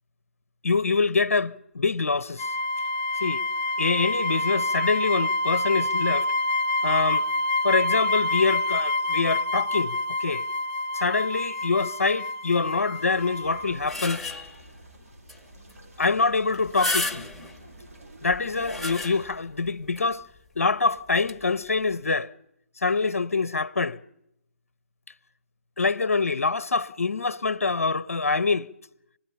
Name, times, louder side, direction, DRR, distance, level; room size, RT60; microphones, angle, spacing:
voice 1, 0.6-2.5 3.2-3.4 3.8-6.3 6.8-7.3 7.6-10.4 10.9-14.2 16.0-17.3 18.2-20.2 20.6-22.3 22.8-24.0 25.8-28.7, left 4 dB, 75° left, 0.7 m, -25 dB
sound 1, 2.4-13.8, left 2 dB, 25° left, 0.7 m, -27 dB
sound 2, 12.9-19.3, right 1 dB, 85° right, 5.9 m, -50 dB
sound 3, 13.5-14.7 15.3-15.4 15.7-15.8 16.5-17.6 18.3-19.5 20.0-20.1 21.1-21.3, left 2 dB, ahead, 1.0 m, -32 dB
26.0 x 20.0 x 5.6 m
figure-of-eight pair, 140°, 8 cm